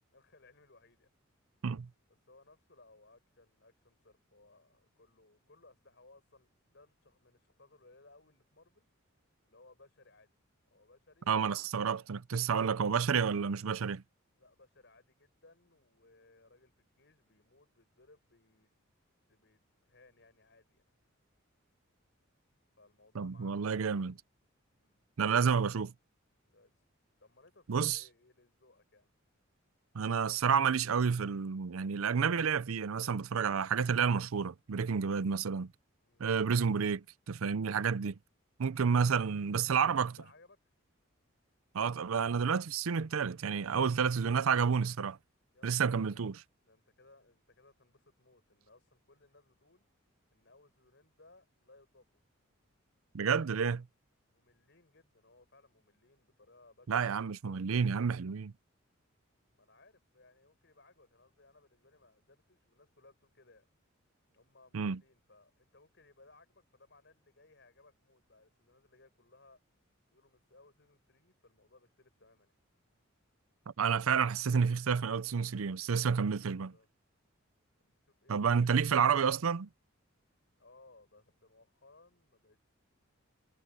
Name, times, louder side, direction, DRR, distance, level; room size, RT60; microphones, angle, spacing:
voice 1, 0.1-1.1 2.1-8.9 9.4-10.3 10.7-11.5 14.4-18.7 19.3-20.8 22.8-24.2 24.7-25.1 26.4-26.7 27.2-29.1 36.0-36.3 39.5-40.6 45.5-46.2 46.6-49.9 50.3-52.1 54.3-58.2 59.5-63.7 64.3-69.6 70.1-72.5 76.7-76.9 77.8-78.8 80.6-82.6, left 2 dB, 55° left, 6.3 m, -63 dB
voice 2, 11.3-14.0 23.1-24.1 25.2-25.9 27.7-28.0 29.9-35.7 36.2-38.1 38.6-40.1 41.7-45.2 45.6-46.3 53.1-53.9 56.9-58.5 64.7-65.0 73.8-76.7 78.3-79.7, right 6 dB, 80° right, 0.5 m, -30 dB
head